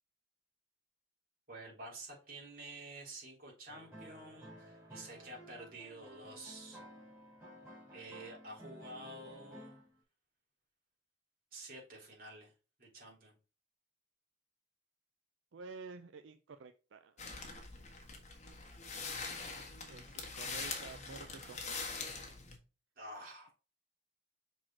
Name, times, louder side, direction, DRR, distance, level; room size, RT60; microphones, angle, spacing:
voice 1, 1.5-6.8 7.9-9.8 11.5-12.5 12.8-13.3 23.0-23.5, right 1 dB, 50° right, -2 dB, 3.5 m, -50 dB
sound 1, 3.7-9.9, equal, 10° right, 3.8 m, -54 dB
voice 2, 15.5-17.2 19.9-22.0, right 4 dB, 80° right, 9 dB, 0.4 m, -51 dB
sound 2, 17.2-22.6, left 4 dB, 35° left, 1.4 m, -43 dB
6.1 x 4.3 x 4.4 m, 0.34 s
head